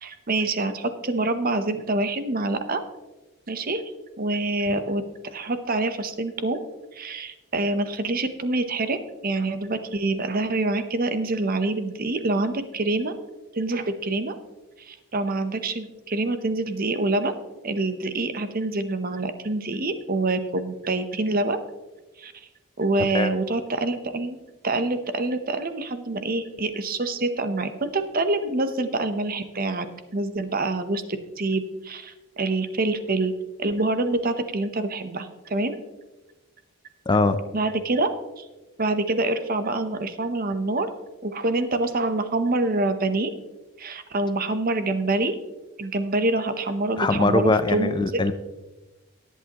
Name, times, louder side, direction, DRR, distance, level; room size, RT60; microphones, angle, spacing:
voice 1, 0.0-2.8 3.5-3.8 4.2-5.0 5.3-6.6 6.9-9.0 9.2-13.1 13.5-14.3 14.8-17.3 17.6-21.6 22.2-22.5 22.8-29.9 30.1-31.0 31.4-33.3 33.6-35.8 37.5-38.1 38.4-38.5 38.8-40.9 41.2-43.3 43.8-45.3 45.8-48.2, right 2 dB, 40° right, 10 dB, 0.8 m, -26 dB
voice 2, 37.1-37.4 47.0-48.3, left 3 dB, 20° left, 10 dB, 0.4 m, -21 dB
18.0 x 8.3 x 3.0 m, 1.1 s
head